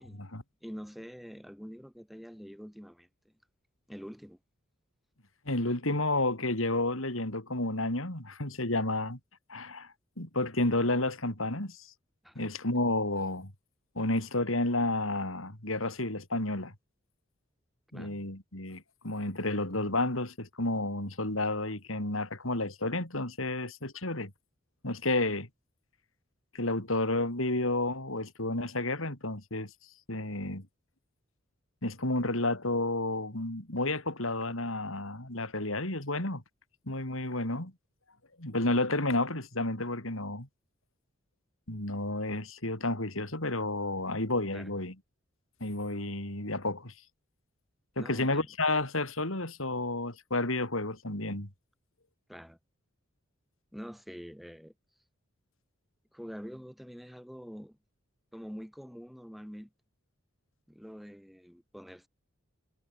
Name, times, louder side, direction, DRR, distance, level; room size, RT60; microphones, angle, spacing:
voice 1, 0.6-3.3 3.9-4.4 12.2-12.5 17.9-18.1 44.5-44.7 48.0-48.5 52.3-52.6 53.7-54.7 56.1-57.8 58.3-59.7 60.7-62.1, equal, ahead, 6.0 m, -45 dB
voice 2, 5.5-9.2 9.5-9.9 10.2-11.9 12.4-13.5 14.0-16.7 17.9-24.3 24.8-25.5 26.5-29.7 30.1-30.7 31.8-36.4 36.9-37.7 38.4-40.5 41.7-44.9 45.6-46.9 48.0-51.5, left 2 dB, 75° left, 5.7 m, -31 dB
head